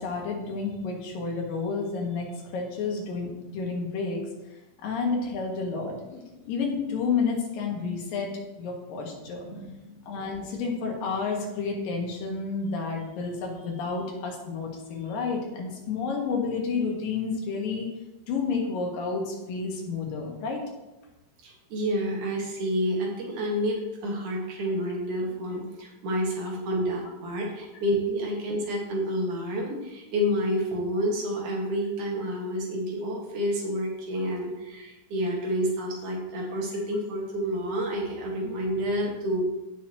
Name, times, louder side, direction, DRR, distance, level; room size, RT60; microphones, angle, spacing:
voice 1, 0.0-4.3 4.8-9.5 10.1-17.9 18.3-20.6, left 4 dB, 75° left, 0 dB, 3.3 m, -30 dB
voice 2, 9.4-9.9 21.4-39.4, equal, 60° right, -1 dB, 3.1 m, -29 dB
16.0 x 6.2 x 3.0 m, 1.0 s
omnidirectional pair, 4.1 m